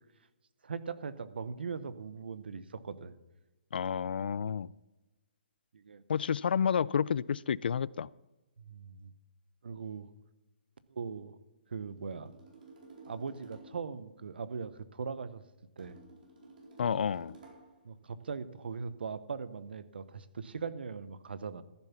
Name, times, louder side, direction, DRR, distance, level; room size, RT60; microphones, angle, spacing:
voice 1, 0.6-3.2 5.7-6.0 8.6-9.1 9.6-10.1 10.9-11.4 11.7-12.3 13.1-15.4 15.8-16.0 17.8-21.6, right 5 dB, 80° right, 0.9 m, -40 dB
voice 2, 3.7-4.7 6.1-8.1 16.8-17.3, left 7 dB, 75° left, 0.4 m, -30 dB
sound 1, 11.8-13.9 15.8-17.8, right 3 dB, 55° right, 4.5 m, -53 dB
14.5 x 7.2 x 5.8 m
hypercardioid pair, 150°, 5 cm